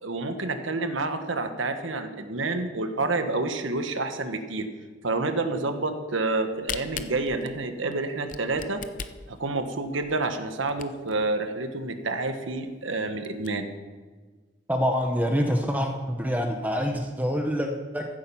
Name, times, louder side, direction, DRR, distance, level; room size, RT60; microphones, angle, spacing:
voice 1, 0.0-4.7 5.0-8.8 9.3-13.7, right 3 dB, 85° right, 7 dB, 1.3 m, -29 dB
Camera, 6.3-11.2 11.8-11.9 12.1-12.2 12.7-12.8 13.1-13.5, left 7 dB, 40° left, 0.6 m, -38 dB
voice 2, 14.7-18.1, equal, 10° right, 4 dB, 0.8 m, -26 dB
15.0 x 9.0 x 5.8 m, 1.4 s
head